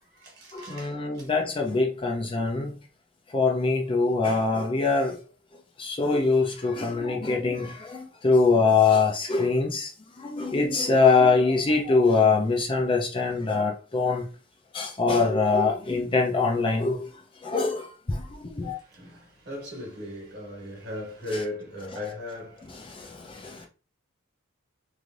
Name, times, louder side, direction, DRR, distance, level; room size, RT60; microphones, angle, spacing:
voice 1, 0.0-1.5 2.4-2.5 18.6-23.7, left 1 dB, 50° right, 1.4 m, -38 dB
voice 2, 0.5-2.7 3.3-5.2 5.8-9.9 10.2-14.3 14.7-17.0 17.4-18.8 22.9-23.7, left 4 dB, 25° left, 0.5 m, -23 dB
3.2 x 2.7 x 2.5 m
head